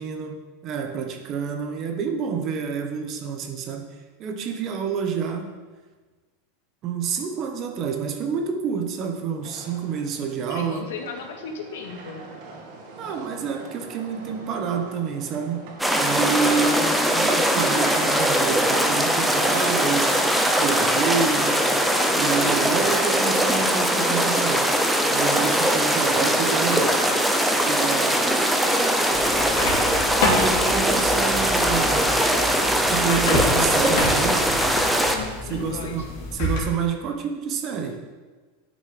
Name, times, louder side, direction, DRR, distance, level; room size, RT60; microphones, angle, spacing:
voice 1, 0.0-3.9 4.2-5.6 6.8-10.9 13.0-20.2 20.6-21.7 22.1-24.7 25.1-27.0 27.7-28.2 30.2-32.1 32.8-34.6 35.4-38.0, right 6 dB, 30° right, 5 dB, 1.0 m, -28 dB
sound 1, 9.4-19.0, right 3 dB, 50° right, 2.1 m, -41 dB
voice 2, 10.5-12.2 26.1-26.6 35.5-36.2, left 5 dB, 85° left, 2 dB, 1.9 m, -36 dB
sound 2, 15.8-35.2, equal, ahead, 0.7 m, -21 dB
sound 3, 29.1-36.6, left 2 dB, 50° left, 3.0 m, -29 dB
12.0 x 6.4 x 5.1 m, 1.3 s
supercardioid pair, 175°, 0 cm